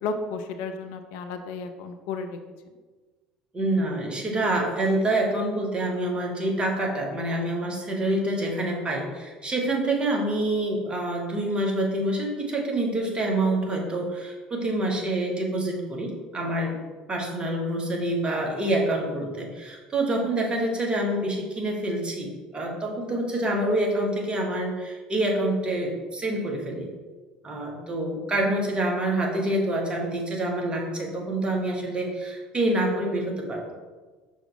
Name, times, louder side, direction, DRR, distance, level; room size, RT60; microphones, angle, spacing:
voice 1, 0.0-2.4, left 4 dB, 60° left, 7 dB, 0.6 m, -33 dB
voice 2, 3.5-16.8 17.1-26.9 27.4-33.7, right 1 dB, 25° right, 0 dB, 1.7 m, -27 dB
6.4 x 6.0 x 3.4 m, 1.3 s
figure-of-eight pair, 60°, 4 cm